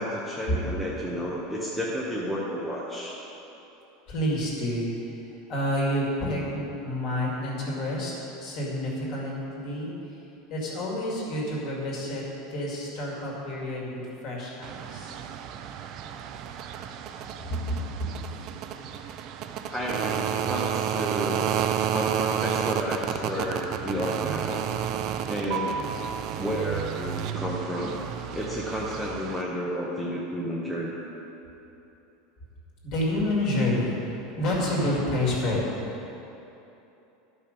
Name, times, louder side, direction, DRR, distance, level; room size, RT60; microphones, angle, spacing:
voice 1, 0.0-3.2 19.7-21.5 21.9-24.6 25.3-25.7 26.3-28.0 28.3-31.0, equal, ahead, -5 dB, 0.6 m, -31 dB
voice 2, 4.1-8.1 8.4-10.2 10.5-12.2 12.5-15.2 17.5-17.8 32.8-35.6, left 1 dB, 40° left, -4 dB, 2.1 m, -29 dB
sound 1, 14.6-29.4, right 9 dB, 35° right, 0.4 m, -31 dB
12.0 x 5.5 x 5.1 m, 3.0 s
supercardioid pair, 175°, 0 cm